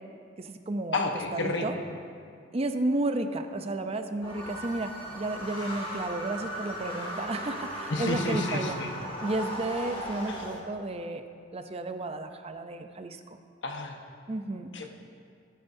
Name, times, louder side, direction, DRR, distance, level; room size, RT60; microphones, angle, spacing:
voice 1, 0.4-1.0 1.3-1.8 2.5-8.8 9.2-11.2 11.5-13.2 14.3-14.7, right 2 dB, 35° right, 7 dB, 0.6 m, -32 dB
voice 2, 0.9-1.6 7.9-8.9 10.3-10.5 13.6-14.0 14.7-14.9, left 2 dB, 80° left, 3 dB, 1.2 m, -30 dB
sound 1, 4.2-10.6, equal, 35° left, 2.1 m, -37 dB
20.5 x 9.2 x 2.7 m, 2.3 s
head